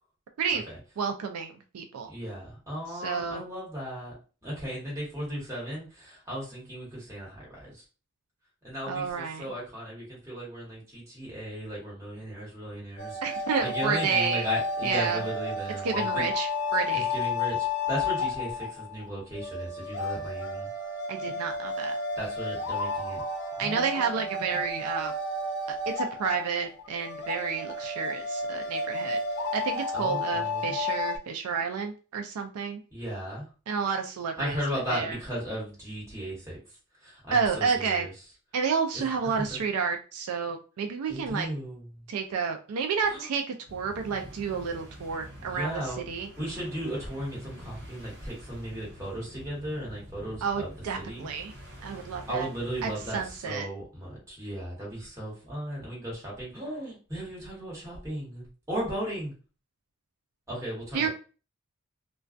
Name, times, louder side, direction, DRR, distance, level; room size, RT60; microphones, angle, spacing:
voice 1, 1.0-2.1 3.0-3.4 8.9-9.5 13.2-14.5 14.8-15.2 15.8-17.1 21.1-22.0 23.6-25.1 26.0-29.2 29.5-32.8 33.7-34.6 34.9-35.2 37.3-38.1 38.5-41.5 42.1-43.4 43.7-46.3 50.4-51.5 51.8-52.5 52.8-53.7 60.9-61.1, right 6 dB, 80° right, 4 dB, 0.4 m, -30 dB
voice 2, 2.1-4.1 4.4-7.8 8.6-13.2 13.6-16.3 16.9-20.7 22.2-23.2 23.6-24.6 29.9-30.7 32.9-33.5 34.4-36.6 37.0-38.1 38.9-39.6 41.1-42.0 43.1-43.3 45.4-46.0 46.4-50.7 51.0-51.3 52.3-53.2 53.5-59.3 60.5-61.1, equal, 15° right, -5 dB, 1.2 m, -36 dB
sound 1, 13.0-31.2, left 3 dB, 50° left, 0.5 m, -32 dB
sound 2, 43.6-53.4, equal, 50° right, 0.8 m, -47 dB
2.2 x 2.2 x 2.5 m, 0.35 s
head